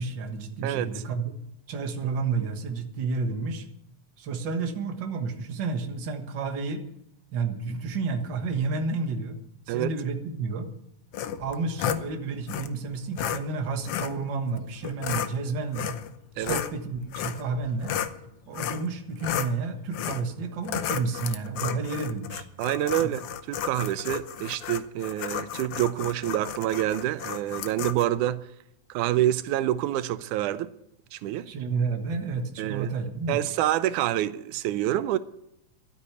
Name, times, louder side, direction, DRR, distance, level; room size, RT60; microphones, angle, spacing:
voice 1, 0.0-1.3 1.7-3.7 4.2-6.8 7.3-9.4 9.7-10.7 11.4-16.0 16.4-17.9 18.5-22.5 23.0-23.1 31.5-33.4, right 4 dB, 45° right, 1.8 m, -31 dB
voice 2, 0.6-1.0 9.7-9.9 16.4-16.6 22.6-28.5 28.9-30.7 31.1-31.5 32.6-32.9 33.3-35.2, right 13 dB, 85° right, 2.1 m, -27 dB
sound 1, 11.1-12.0 12.5-12.7 13.2-13.4 13.9-14.1 14.8-15.3 15.7-16.1 16.4-18.2 18.5-18.9 19.2-19.5 19.9-20.3 20.6-28.0, left 10 dB, 65° left, 1.5 m, -32 dB
12.5 x 9.7 x 8.2 m
omnidirectional pair, 3.4 m